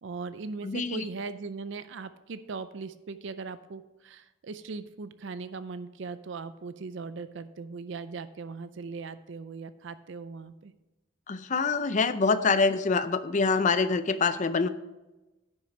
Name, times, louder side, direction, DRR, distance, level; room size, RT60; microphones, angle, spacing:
voice 1, 0.0-10.7, right 4 dB, 60° right, 13 dB, 0.4 m, -39 dB
voice 2, 0.6-1.0 11.3-14.7, left 4 dB, 35° left, 12 dB, 0.5 m, -25 dB
10.0 x 5.8 x 5.3 m, 1.0 s
head